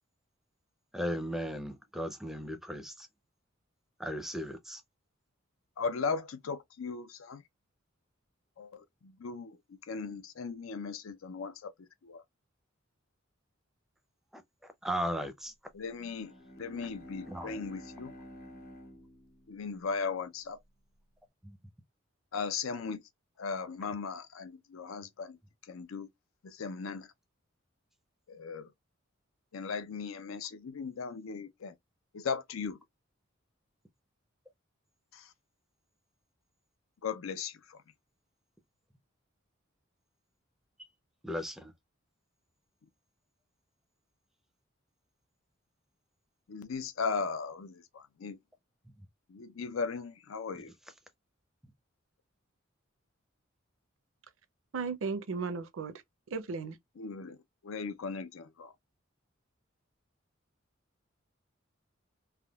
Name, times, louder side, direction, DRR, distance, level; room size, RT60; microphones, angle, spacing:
voice 1, 0.9-3.1 4.0-4.8 14.3-14.4 14.8-15.5 17.3-17.6 21.4-21.6 41.2-41.7, equal, ahead, 0.5 m, -36 dB
voice 2, 5.8-7.4 8.6-9.6 9.9-11.7 12.0-12.2 15.7-18.1 19.5-20.6 22.3-23.0 23.4-25.4 25.7-26.1 26.4-27.1 28.3-28.7 29.5-31.7 32.1-32.8 35.1-35.3 37.0-37.8 46.5-48.4 49.3-50.7 57.0-57.4 57.6-58.7, left 5 dB, 80° left, 0.5 m, -37 dB
Bowed string instrument, 15.9-20.5, equal, 45° left, 1.0 m, -51 dB
voice 3, 54.7-56.0 56.3-56.8, right 4 dB, 70° right, 0.5 m, -35 dB
3.5 x 2.2 x 2.3 m
head